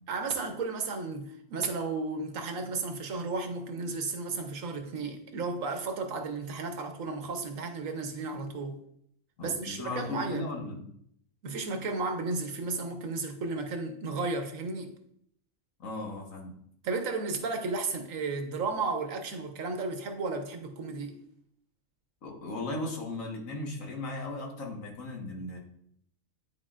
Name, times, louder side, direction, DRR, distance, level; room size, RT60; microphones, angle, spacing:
voice 1, 0.1-8.8 9.4-10.5 11.4-14.9 16.8-21.2, right 3 dB, 80° right, 1.3 m, -33 dB
voice 2, 9.4-10.9 15.8-16.5 22.2-25.6, left 2 dB, 90° left, 1.8 m, -37 dB
10.5 x 4.4 x 2.5 m
omnidirectional pair, 1.4 m